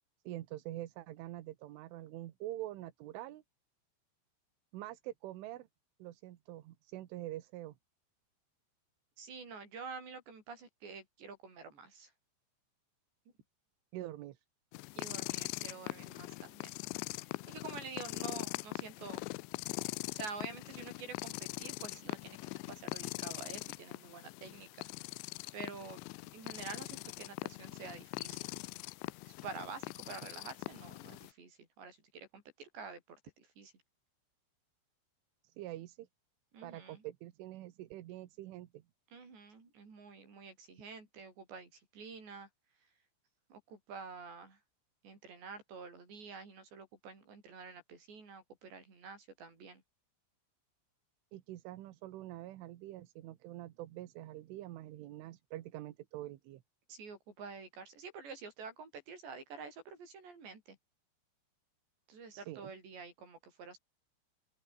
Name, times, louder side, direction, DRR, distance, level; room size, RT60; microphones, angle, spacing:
voice 1, 0.3-3.4 4.7-5.7 6.0-7.8 13.9-14.5 35.4-36.1 36.6-38.8 51.3-56.6 62.3-62.7, right 15 dB, 80° right, 3.8 m, -45 dB
voice 2, 9.2-12.1 14.9-16.8 17.1-19.2 20.1-22.4 22.7-24.9 25.5-28.5 29.3-33.7 36.5-37.0 39.1-42.5 42.8-42.9 43.5-44.6 45.0-49.8 56.9-60.8 62.1-63.8, right 5 dB, 60° right, 9.6 m, -48 dB
sound 1, 14.7-31.3, left 24 dB, 90° left, 2.6 m, -42 dB
open air
omnidirectional pair, 5.8 m